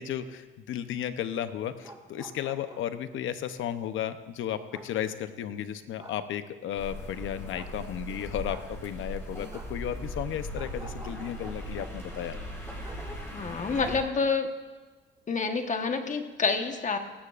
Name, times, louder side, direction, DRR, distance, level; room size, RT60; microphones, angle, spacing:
voice 1, 0.0-12.4, left 10 dB, 80° left, 10 dB, 0.8 m, -34 dB
sound 1, 1.6-3.0 4.7-4.9 6.0-6.2 7.5-7.7 8.5-8.7 9.5-9.7 10.5-12.3 12.8-13.0 13.3-13.4, right 2 dB, 20° right, 1.8 m, -48 dB
sound 2, 6.8-14.0, equal, 15° left, 5.0 m, -39 dB
voice 2, 13.3-14.5 15.3-17.0, left 4 dB, 40° left, 6 dB, 1.3 m, -28 dB
18.5 x 14.5 x 2.5 m, 1.3 s
cardioid pair, 90°, 20 cm